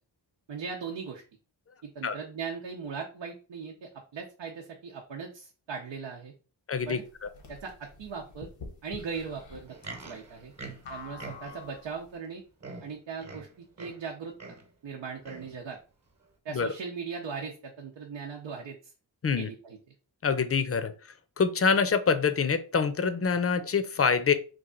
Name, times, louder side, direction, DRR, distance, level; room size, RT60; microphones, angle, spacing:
voice 1, 0.5-1.2 1.9-6.3 6.9-7.0 7.5-8.5 8.8-10.5 10.9-12.4 12.8-14.3 14.8-15.8 16.4-18.9 19.4-19.8, right 5 dB, 75° right, 1 dB, 0.8 m, -39 dB
sound 1, 6.7-12.0, left 4 dB, 85° left, 1.1 m, -47 dB
voice 2, 6.7-7.0 16.5-16.7 19.2-19.5 20.2-20.9 21.4-24.3, left 5 dB, 30° left, 11 dB, 0.5 m, -25 dB
Livestock farm animals working animals, 9.5-11.7 12.3-12.4 12.6-14.1 14.4-14.7 15.2-15.6 16.2-16.3, right 3 dB, 35° right, 1.0 m, -44 dB
3.2 x 2.4 x 3.8 m, 0.36 s
cardioid pair, 55°, 45 cm